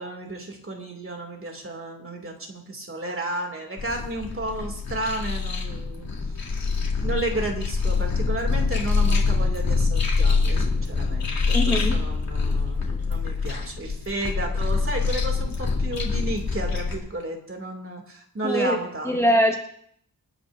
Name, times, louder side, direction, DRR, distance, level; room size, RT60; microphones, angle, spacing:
voice 1, 0.0-6.1 6.3-19.2, right 1 dB, 35° right, 2 dB, 2.6 m, -32 dB
sound 1, 3.8-17.0, left 4 dB, 65° left, 3.2 m, -25 dB
voice 2, 11.5-12.0 18.4-18.8 19.0-19.6, equal, 5° left, 0 dB, 1.4 m, -21 dB
28.0 x 9.5 x 2.7 m, 0.66 s
wide cardioid pair, 125°, 38 cm